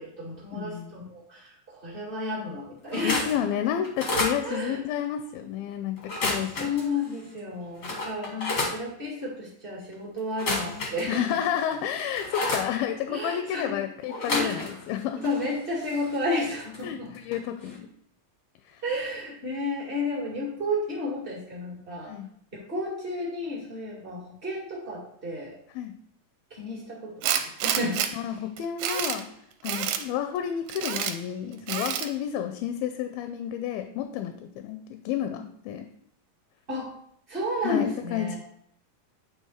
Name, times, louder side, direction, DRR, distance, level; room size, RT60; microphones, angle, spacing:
voice 1, 0.0-3.2 4.4-4.8 6.5-11.3 13.1-13.8 14.3-14.7 15.2-17.1 18.8-22.1 22.5-25.6 26.5-28.2 36.7-36.9 37.3-38.4, left 2 dB, 30° right, -5 dB, 0.9 m, -32 dB
voice 2, 0.5-0.9 2.9-6.7 10.5-15.3 16.8-17.9 18.7-18.8 22.1-22.3 25.7-26.0 28.1-29.4 29.6-35.9 37.6-38.4, left 10 dB, 85° left, 7 dB, 2.3 m, -31 dB
sound 1, 2.8-3.4 3.8-4.4 6.0-6.8 7.4-7.5 7.8-8.8 10.3-11.3 11.7-12.7 14.1-14.9 15.2-16.8 17.1-17.3 17.6-17.7, left 2 dB, 60° left, 1.0 m, -31 dB
Tools, 27.2-28.1 28.6-29.2 29.6-30.0 30.7-31.1 31.7-32.1, right 9 dB, 80° right, 2.3 m, -28 dB
9.3 x 3.3 x 4.3 m, 0.69 s
omnidirectional pair, 4.2 m